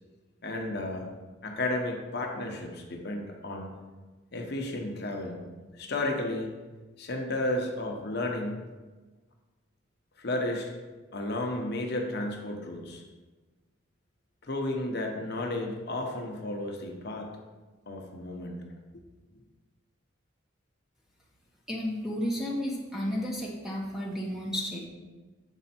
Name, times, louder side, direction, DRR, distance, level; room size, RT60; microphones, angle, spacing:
voice 1, 0.4-1.1 1.4-3.7 4.3-5.4 5.8-6.5 7.0-8.6 10.2-10.7 11.1-13.0 14.5-17.3 17.9-18.6, left 1 dB, 50° left, 1 dB, 0.8 m, -33 dB
voice 2, 21.7-24.9, equal, ahead, -3 dB, 1.0 m, -32 dB
7.1 x 4.3 x 4.2 m, 1.3 s
head